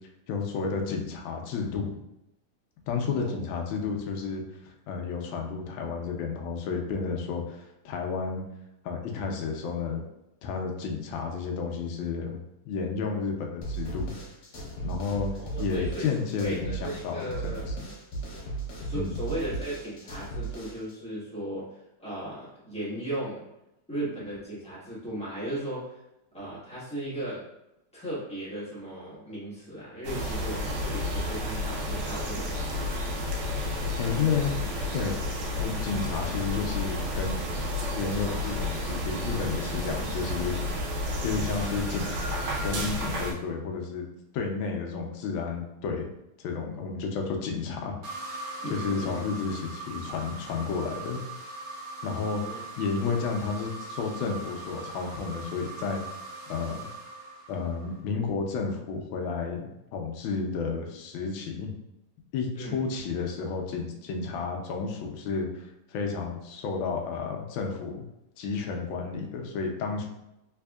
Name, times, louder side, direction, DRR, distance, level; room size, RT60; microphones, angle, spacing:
voice 1, 0.3-1.9 2.9-8.4 8.8-10.0 10.4-12.4 12.6-14.1 14.8-15.3 15.6-17.9 18.9-19.2 34.0-34.7 34.9-35.1 35.6-37.4 37.9-40.5 41.2-42.2 42.6-44.0 44.3-46.1 46.4-48.0 48.7-51.2 52.0-56.0 56.5-56.9 57.5-61.7 62.3-68.0 68.4-70.1, left 5 dB, 75° left, 2 dB, 1.2 m, -31 dB
sound 1, 13.6-20.9, right 3 dB, 55° left, 1.3 m, -36 dB
voice 2, 15.4-16.1 16.4-17.7 18.8-21.6 22.0-23.4 23.9-26.0 26.3-27.4 27.9-33.0 39.9-40.1 48.6-49.3 52.3-52.7 62.5-62.8, right 1 dB, 5° left, -10 dB, 0.6 m, -36 dB
sound 2, 30.0-43.3, left 1 dB, 75° right, 1.5 m, -31 dB
sound 3, 48.0-58.0, right 2 dB, 50° right, 1.2 m, -41 dB
3.5 x 3.3 x 2.3 m, 0.89 s
omnidirectional pair, 2.4 m